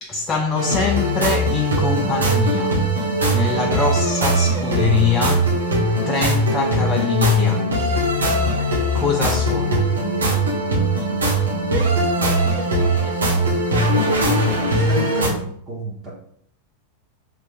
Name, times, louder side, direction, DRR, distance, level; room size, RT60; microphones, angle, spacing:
voice 1, 0.0-2.8 3.3-8.1 8.9-9.9, left 5 dB, 20° left, 0.4 m, -24 dB
sound 1, 0.5-15.3, right 1 dB, 70° right, 1.3 m, -20 dB
voice 2, 14.5-16.1, right 3 dB, 25° right, 1.2 m, -32 dB
6.0 x 3.2 x 2.6 m
figure-of-eight pair, 90°, 0 cm